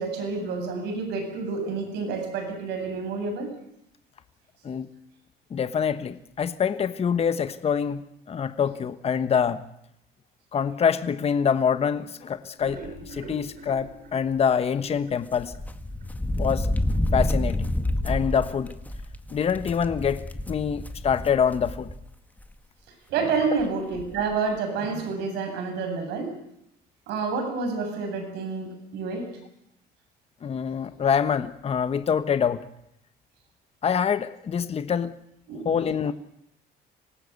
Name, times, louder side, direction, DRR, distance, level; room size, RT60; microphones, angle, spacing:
voice 1, 0.0-3.5 23.1-26.3 27.1-29.3 35.5-35.8, right 4 dB, 85° right, 4 dB, 7.9 m, -29 dB
voice 2, 5.5-8.0 8.3-9.6 10.5-15.5 16.4-16.7 17.1-17.7 18.0-18.7 19.3-21.9 30.4-32.6 33.8-35.1 35.6-36.1, left 7 dB, 35° left, 11 dB, 1.2 m, -25 dB
sound 1, 12.4-15.6 16.0-16.1 16.5-16.6 16.9-17.0, right 3 dB, 55° right, 7.0 m, -44 dB
sound 2, 15.3-22.0 22.4-22.5 23.6-23.7 23.9-24.2, left 1 dB, 10° left, 1.8 m, -29 dB
25.5 x 18.5 x 8.3 m, 0.74 s
cardioid pair, 110°, 17 cm